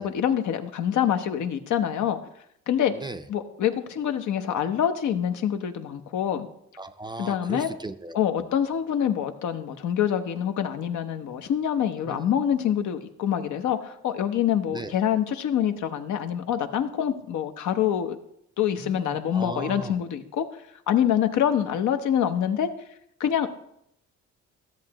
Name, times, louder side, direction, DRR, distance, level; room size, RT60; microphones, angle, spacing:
voice 1, 0.0-2.2 2.7-2.9 3.3-6.5 7.2-7.7 8.1-18.2 18.6-20.4 20.9-22.7 23.2-23.5, left 9 dB, 75° left, 7 dB, 0.9 m, -25 dB
voice 2, 2.9-3.2 6.8-8.2 12.0-12.2 14.7-15.0 18.8-20.0, right 2 dB, 15° right, 9 dB, 0.5 m, -37 dB
13.5 x 7.4 x 2.9 m, 0.76 s
cardioid pair, 90°, 30 cm